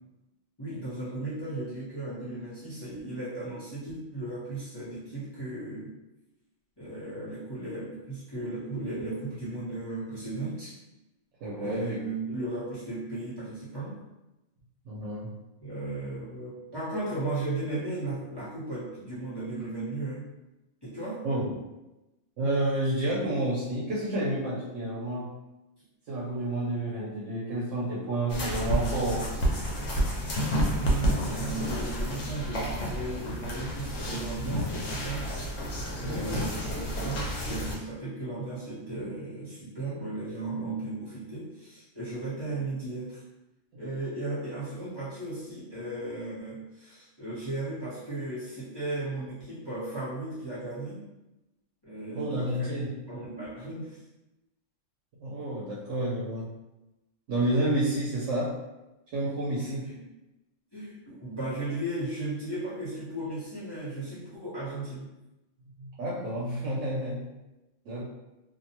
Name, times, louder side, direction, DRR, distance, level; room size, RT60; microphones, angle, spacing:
voice 1, 0.6-5.9 6.8-10.8 11.6-14.0 15.6-20.2 20.8-21.3 30.8-35.3 36.0-43.2 43.8-51.0 51.8-52.7 53.1-54.0 59.6-60.0 60.7-65.1, right 2 dB, 25° left, -12 dB, 0.7 m, -36 dB
voice 2, 11.4-12.0 14.9-15.3 21.2-21.5 22.4-25.3 26.1-29.3 36.0-36.4 52.1-52.9 55.2-56.5 57.3-58.5 59.1-59.9 65.8-67.3 67.9-68.1, right 1 dB, 80° right, -6 dB, 0.9 m, -30 dB
sound 1, 28.3-37.8, equal, 80° left, 1.0 m, -30 dB
2.6 x 2.1 x 2.8 m, 0.99 s
omnidirectional pair, 1.3 m